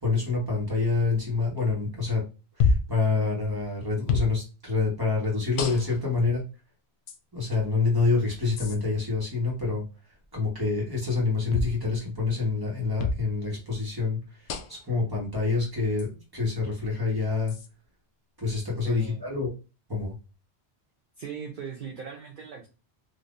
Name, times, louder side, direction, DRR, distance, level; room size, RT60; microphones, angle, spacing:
voice 1, 0.0-2.2 2.6-6.4 7.3-9.8 10.3-17.5 18.4-19.5 19.9-20.1, left 4 dB, 20° right, -2 dB, 1.3 m, -27 dB
sound 1, 2.6-3.0 4.1-4.3 5.6-6.1 7.1-7.2 8.6-8.8 11.5-11.8 13.0-13.2 14.5-14.9 16.0-16.1 17.5-17.7, left 4 dB, 60° left, 0.6 m, -27 dB
voice 2, 18.8-19.2 21.2-22.7, right 6 dB, 55° right, 1 dB, 0.7 m, -38 dB
3.6 x 2.7 x 2.5 m, 0.31 s
omnidirectional pair, 1.1 m